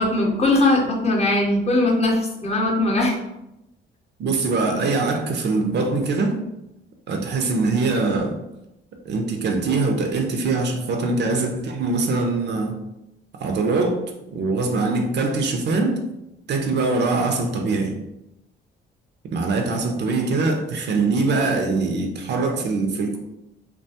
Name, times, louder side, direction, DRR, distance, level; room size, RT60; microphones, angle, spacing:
voice 1, 0.0-3.1, left 2 dB, 30° left, 0 dB, 0.6 m, -20 dB
voice 2, 4.2-6.4 7.1-8.4 9.0-12.8 13.4-14.0 14.3-16.0 16.5-18.0 19.2-23.2, right 3 dB, 60° right, 3 dB, 0.5 m, -22 dB
2.3 x 2.2 x 2.7 m, 0.89 s
cardioid pair, 90°, 20 cm